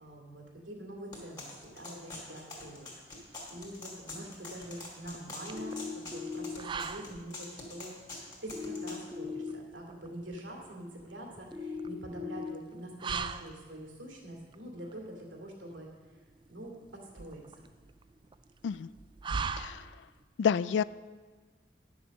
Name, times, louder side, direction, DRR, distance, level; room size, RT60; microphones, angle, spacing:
voice 1, 0.0-2.9 3.5-7.9 8.4-15.9 16.1-16.2 16.5-17.7, right 1 dB, 85° right, -1 dB, 2.4 m, -45 dB
sound 1, 1.1-9.0, left 2 dB, 20° left, 2.4 m, -45 dB
sound 2, 3.2-20.2, right 5 dB, 25° right, 0.3 m, -43 dB
sound 3, 5.5-6.5 8.5-9.5 11.5-12.5, left 5 dB, 10° right, 1.0 m, -38 dB
voice 2, 20.4-20.8, left 7 dB, 70° left, 18 dB, 0.3 m, -28 dB
10.5 x 7.1 x 6.4 m, 1.4 s
head